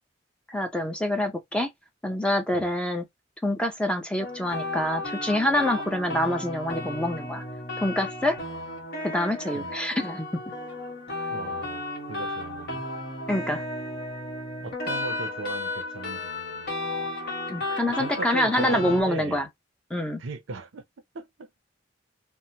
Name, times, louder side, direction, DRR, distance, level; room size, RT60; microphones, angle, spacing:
voice 1, 0.5-1.7 2.0-3.0 3.4-7.4 7.8-8.4 9.0-10.3 13.3-13.6 17.5-19.5 19.9-20.2, left 1 dB, 5° left, 0.5 m, -26 dB
sound 1, 4.2-19.0, left 2 dB, 60° left, 1.3 m, -34 dB
voice 2, 11.3-12.8 14.6-16.7 18.0-19.4 20.2-20.8 21.1-21.5, right 3 dB, 75° right, 0.6 m, -37 dB
2.9 x 2.1 x 2.7 m
head